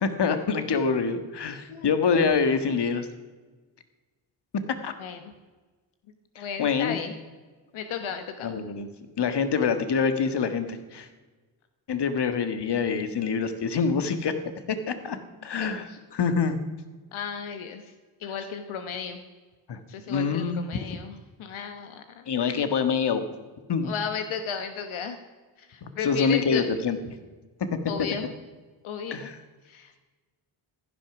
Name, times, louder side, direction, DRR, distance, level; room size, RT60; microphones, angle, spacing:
voice 1, 0.0-3.1 4.8-4.9 6.3-7.0 8.4-8.9 9.2-11.1 11.9-14.4 14.7-15.2 15.4-16.6 19.7-19.8 20.1-20.8 22.3-23.2 23.7-23.9 25.8-27.0 28.0-28.1 29.1-29.4, left 5 dB, 55° left, 9 dB, 1.6 m, -26 dB
voice 2, 5.0-5.3 6.4-7.1 7.7-8.6 15.6-16.0 17.1-17.8 18.2-19.2 19.9-22.6 23.8-25.2 25.6-26.7 27.9-28.3 28.8-29.3 29.7-30.0, left 6 dB, 80° left, 7 dB, 1.1 m, -34 dB
15.0 x 11.0 x 6.0 m, 1.3 s
cardioid pair, 65°, 47 cm